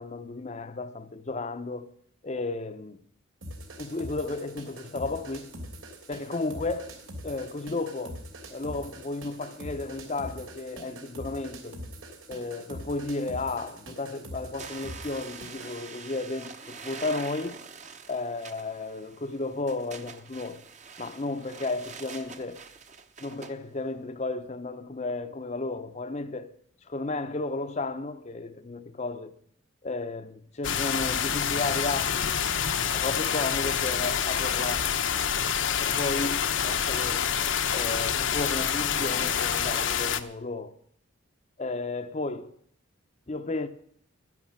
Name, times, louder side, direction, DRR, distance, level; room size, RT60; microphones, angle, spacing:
voice 1, 0.0-1.9 2.2-3.0 3.8-5.5 6.1-6.9 7.2-8.2 8.5-11.8 12.3-17.6 18.1-20.6 21.0-22.6 23.2-26.5 26.9-29.3 29.8-32.3 32.9-34.9 35.8-37.3 37.7-40.7 41.6-42.5 43.3-43.7, left 3 dB, 35° left, 0.7 m, -33 dB
sound 1, 3.4-15.8, equal, 85° right, 3.2 m, -43 dB
sound 2, 14.6-23.6, right 5 dB, 35° right, 1.0 m, -45 dB
sound 3, 30.6-40.2, left 8 dB, 65° left, 0.9 m, -27 dB
12.5 x 11.0 x 7.3 m
head